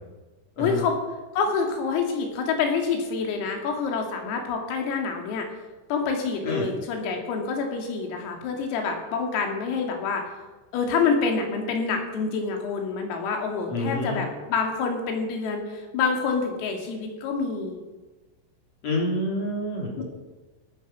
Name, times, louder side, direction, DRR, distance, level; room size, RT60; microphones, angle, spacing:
voice 1, 0.6-1.0 1.4-5.5 5.9-10.2 10.7-17.8 20.0-20.1, left 5 dB, 80° left, 3 dB, 5.3 m, -27 dB
voice 2, 13.7-14.3 18.8-19.9, left 1 dB, 35° left, -1 dB, 3.9 m, -27 dB
16.5 x 14.0 x 6.3 m, 1.2 s
omnidirectional pair, 6.0 m